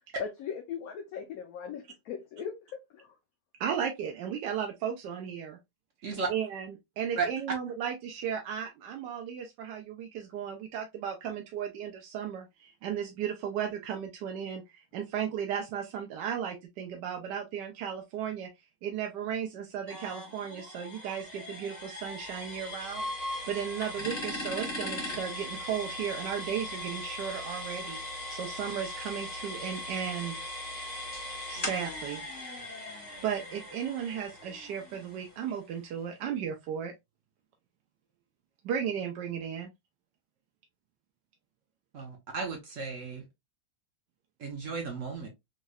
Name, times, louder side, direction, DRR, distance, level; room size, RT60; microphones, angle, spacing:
voice 1, 0.2-3.1 24.0-24.1, left 7 dB, 70° left, 0.9 m, -39 dB
voice 2, 3.6-5.6 6.3-6.7 7.0-18.5 18.8-30.4 31.5-32.2 33.2-36.9 38.6-39.7, right 8 dB, 90° right, 1.2 m, -35 dB
sound 1, 19.9-35.6, left 1 dB, 35° left, 1.7 m, -39 dB
voice 3, 41.9-43.3 44.4-45.3, right 5 dB, 55° right, 0.9 m, -34 dB
3.7 x 3.0 x 2.2 m
omnidirectional pair, 1.8 m